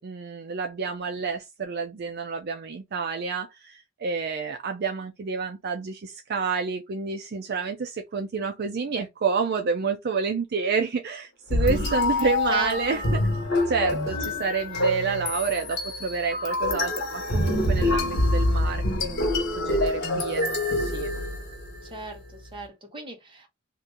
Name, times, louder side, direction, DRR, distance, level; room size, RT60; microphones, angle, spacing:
voice 1, 0.0-13.2 13.7-20.5 20.8-21.1, right 5 dB, 55° right, 0.5 m, -29 dB
sound 1, 11.5-21.8, left 1 dB, 55° left, 1.4 m, -26 dB
voice 2, 12.2-13.0 14.2-14.3 21.8-23.5, right 2 dB, 25° right, 1.2 m, -36 dB
2.8 x 2.5 x 3.7 m
head